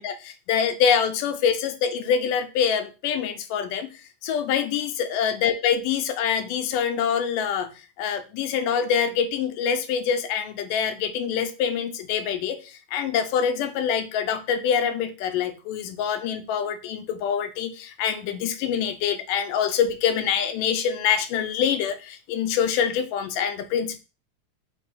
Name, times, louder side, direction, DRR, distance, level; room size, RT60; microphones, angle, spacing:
voice 1, 0.0-7.7 8.0-24.0, left 7 dB, 90° left, 8 dB, 2.4 m, -25 dB
6.6 x 3.0 x 5.6 m, 0.32 s
omnidirectional pair, 3.7 m